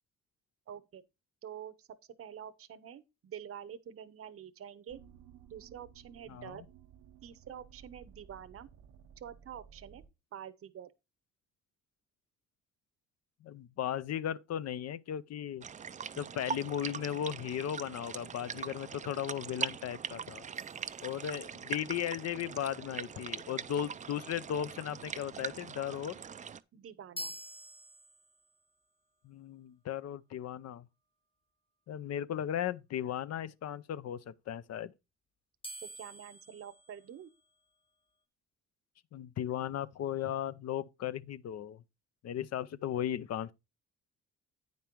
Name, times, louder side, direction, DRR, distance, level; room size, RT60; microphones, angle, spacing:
voice 1, 0.7-1.0 1.4-5.0 5.5-6.6 7.2-8.7 9.2-10.0 10.3-10.9 26.7-27.4 35.8-37.3, right 9 dB, 50° right, 0.8 m, -47 dB
sound 1, 4.9-10.1, right 8 dB, 85° right, 0.8 m, -57 dB
voice 2, 13.4-15.6 16.2-20.5 21.0-26.2 29.2-30.9 31.9-34.9 39.1-41.8 42.2-43.5, left 10 dB, 55° left, 0.6 m, -36 dB
sound 2, 15.6-26.6, right 7 dB, 25° right, 0.4 m, -42 dB
sound 3, 20.6-21.9 27.2-28.6 35.6-37.8, equal, 20° left, 1.2 m, -48 dB
9.0 x 5.3 x 4.5 m
cardioid pair, 90°, 30 cm